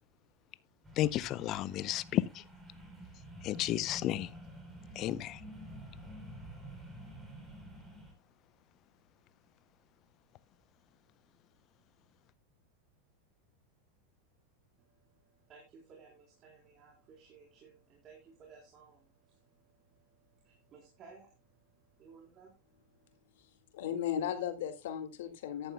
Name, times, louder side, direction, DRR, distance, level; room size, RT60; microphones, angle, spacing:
sound 1, 0.8-8.1, right 1 dB, 10° right, 4.0 m, -49 dB
voice 1, 1.0-2.4 3.4-4.3 5.0-5.4, left 13 dB, 40° left, 0.6 m, -32 dB
voice 2, 14.8-23.2, right 5 dB, 35° right, 3.7 m, -59 dB
voice 3, 23.7-25.7, left 9 dB, 75° left, 1.8 m, -36 dB
14.0 x 11.5 x 2.2 m
supercardioid pair, 135°, 0 cm